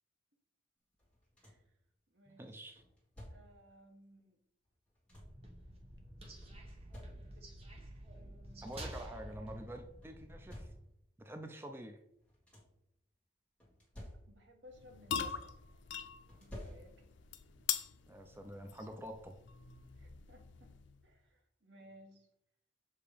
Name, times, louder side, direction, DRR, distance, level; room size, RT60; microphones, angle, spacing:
sound 1, 1.0-1.8 2.8-3.7 4.6-5.5 6.4-7.6 8.2-8.3 8.5-9.1 10.0-11.2 12.1-12.9 13.6-14.6 14.9-15.7 16.3-17.3 18.6-18.7 19.2-19.4, equal, 5° left, 1.6 m, -54 dB
voice 1, 1.4-1.8 2.1-2.6 3.3-4.4 7.3-7.5 8.1-8.8 14.3-15.5 16.3-17.0 20.0-20.7 21.0-22.3, equal, 75° right, 2 dB, 1.3 m, -60 dB
voice 2, 2.3-2.8 8.6-10.7 11.2-12.0 17.6-17.7 18.1-19.4, right 1 dB, 15° right, 5 dB, 0.4 m, -47 dB
sound 2, 5.1-10.8, right 1 dB, 35° right, 1.1 m, -50 dB
sound 3, 14.7-21.1, left 8 dB, 85° left, 0.5 m, -43 dB
6.8 x 2.9 x 4.9 m, 0.75 s
head